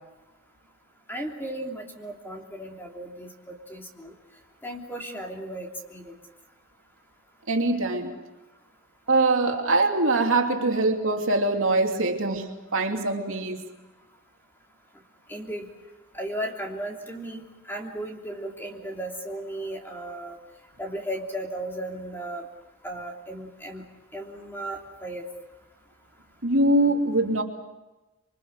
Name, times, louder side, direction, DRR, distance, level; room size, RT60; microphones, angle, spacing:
voice 1, 1.1-4.1 4.6-6.1 15.3-15.7 16.1-20.4 20.8-22.5 22.8-23.8 24.1-25.2, right 1 dB, 10° left, 1 dB, 3.1 m, -35 dB
voice 2, 7.5-8.2 9.1-13.6 26.4-27.4, right 2 dB, 65° right, 2 dB, 2.9 m, -23 dB
26.5 x 24.5 x 6.7 m, 1.1 s
head